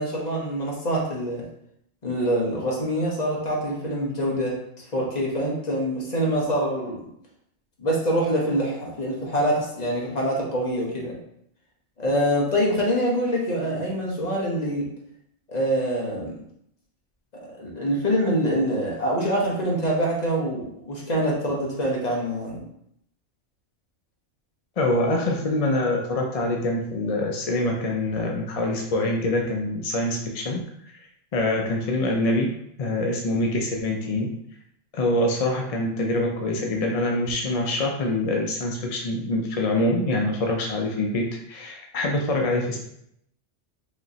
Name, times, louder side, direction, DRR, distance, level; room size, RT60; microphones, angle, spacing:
voice 1, 0.0-1.5 2.0-4.6 4.9-7.1 7.8-11.2 12.0-14.9 15.5-16.3 17.4-22.6, equal, 35° left, -3 dB, 1.1 m, -25 dB
voice 2, 24.8-30.6 31.3-32.5 32.8-34.3 34.9-42.8, left 1 dB, 55° left, 0 dB, 0.4 m, -25 dB
5.0 x 3.0 x 2.7 m, 0.75 s
omnidirectional pair, 1.2 m